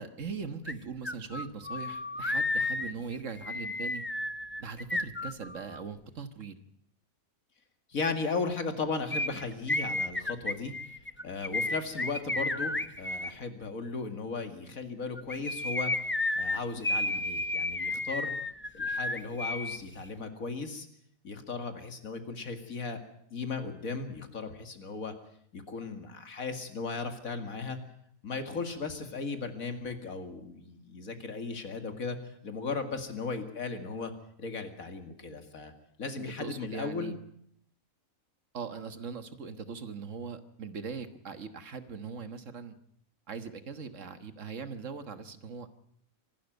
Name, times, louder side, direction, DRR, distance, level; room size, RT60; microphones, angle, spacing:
voice 1, 0.0-4.0 4.6-6.5 36.2-37.2 38.5-42.7 43.3-45.7, right 5 dB, 65° right, 11 dB, 1.7 m, -40 dB
sound 1, 0.7-0.8 1.0-5.8 9.1-13.3 15.2-19.8 20.0-20.1, left 2 dB, 15° left, 0.5 m, -32 dB
voice 2, 7.9-10.7 11.2-15.9 16.4-18.3 18.7-20.9 21.2-23.0 23.3-25.1 25.5-27.8 28.2-32.2 32.4-34.1 34.4-35.7 36.0-37.1, left 4 dB, 85° left, 7 dB, 2.6 m, -36 dB
25.0 x 12.5 x 9.1 m, 0.70 s
omnidirectional pair, 1.4 m